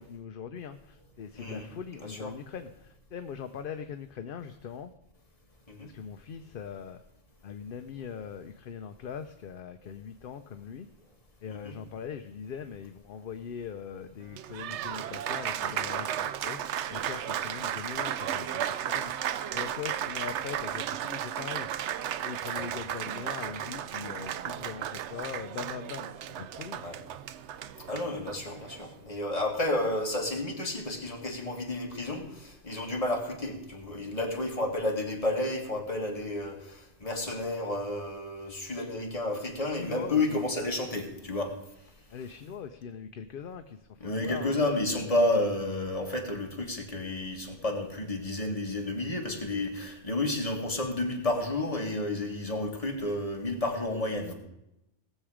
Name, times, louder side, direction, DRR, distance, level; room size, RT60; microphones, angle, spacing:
voice 1, 0.0-4.9 5.8-7.0 7.4-10.9 11.4-19.1 19.5-21.7 22.2-26.8 38.8-38.9 39.8-40.4 42.1-44.6, left 7 dB, 55° left, 8 dB, 0.7 m, -41 dB
voice 2, 1.4-1.7 2.0-2.3 5.7-5.9 11.5-11.8 22.5-22.7 26.8-27.0 27.9-41.5 44.0-54.3, left 2 dB, 30° left, 1 dB, 2.0 m, -31 dB
Applause, 14.2-28.9, right 10 dB, 85° right, 0.9 m, -34 dB
18.5 x 7.4 x 4.9 m, 0.85 s
omnidirectional pair, 1.2 m